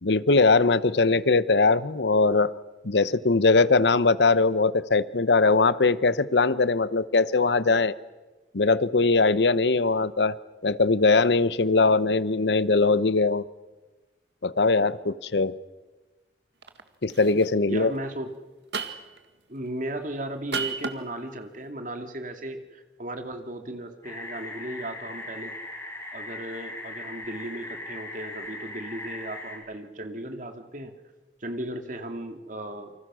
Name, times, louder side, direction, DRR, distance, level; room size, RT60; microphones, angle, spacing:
voice 1, 0.0-2.5 2.8-7.9 8.5-10.3 10.6-13.4 14.4-15.5 17.0-17.9, left 3 dB, 80° left, 16 dB, 0.9 m, -21 dB
sound 1, 16.6-16.8 17.1-17.5 18.7-19.2 20.5-21.0, right 5 dB, 80° right, 2.0 m, -31 dB
voice 2, 17.7-18.3 19.5-25.5 26.1-30.9 31.4-32.9, right 1 dB, 45° right, 6 dB, 2.5 m, -36 dB
sound 2, 24.0-29.6, left 2 dB, 20° left, 7.7 m, -39 dB
28.0 x 25.5 x 6.3 m, 1.2 s
head